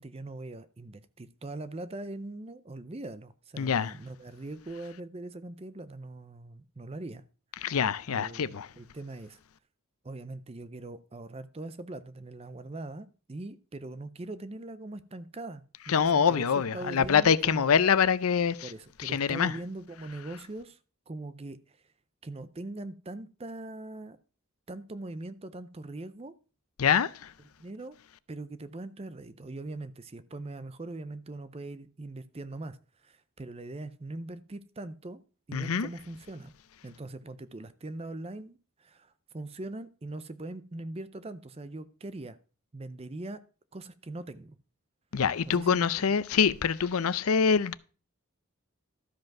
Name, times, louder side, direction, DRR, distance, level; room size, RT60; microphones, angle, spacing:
voice 1, 0.0-7.2 8.1-9.4 10.0-16.5 16.7-17.7 18.6-20.8 21.1-21.8 22.2-24.2 24.7-26.3 27.6-27.9 28.3-35.2 35.5-36.5 36.8-42.4 42.7-43.4 43.7-44.6 45.5-46.1, right 2 dB, 25° right, 0.5 m, -41 dB
voice 2, 3.6-3.9 7.6-8.7 15.9-18.7 19.0-19.5 26.8-27.3 35.5-35.9 45.1-47.7, left 6 dB, 80° left, 0.5 m, -25 dB
13.0 x 5.2 x 5.9 m
head